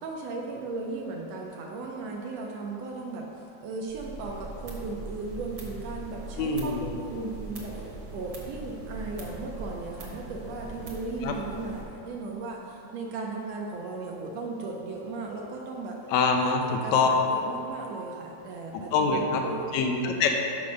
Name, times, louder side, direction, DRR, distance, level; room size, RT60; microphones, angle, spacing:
voice 1, 0.0-3.3 3.6-16.1 16.4-19.6, right 3 dB, 75° right, 0 dB, 1.6 m, -36 dB
sound 1, 3.9-11.8, right 2 dB, 50° right, 1.4 m, -41 dB
voice 2, 6.4-6.8 11.2-11.3 16.1-16.6 16.9-17.1 18.7-19.4 19.7-20.3, left 5 dB, 80° left, 2 dB, 1.9 m, -24 dB
6.0 x 5.1 x 6.2 m, 2.7 s
omnidirectional pair, 3.4 m